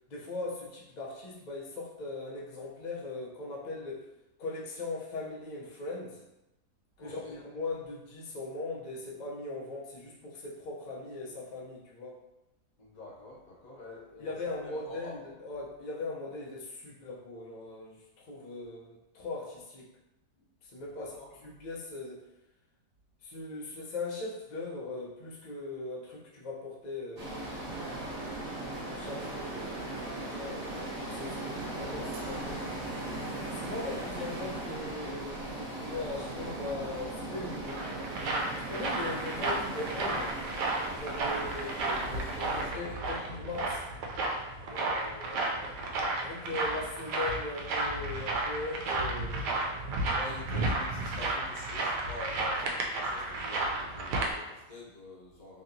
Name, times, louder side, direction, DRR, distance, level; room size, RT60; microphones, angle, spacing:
voice 1, 0.1-4.1 4.4-6.2 7.0-12.2 14.2-19.9 20.6-21.1 21.4-22.2 23.2-27.6 28.8-32.7 33.5-37.8 38.6-40.4 40.9-43.8 46.2-49.7, left 2 dB, 85° left, -5 dB, 0.4 m, -39 dB
voice 2, 7.0-7.4 12.8-14.3 14.6-15.2 20.8-21.3 33.7-34.0 41.3-41.7 42.0-43.2 44.6-46.3 50.0-55.6, left 2 dB, 65° left, -4 dB, 1.3 m, -47 dB
sound 1, 27.2-42.7, right 1 dB, 45° right, 0.9 m, -39 dB
sound 2, 27.7-35.2, right 2 dB, 65° right, 1.2 m, -43 dB
sound 3, 37.3-54.3, right 2 dB, 85° right, 1.2 m, -33 dB
3.2 x 2.8 x 2.6 m, 0.93 s
omnidirectional pair, 1.8 m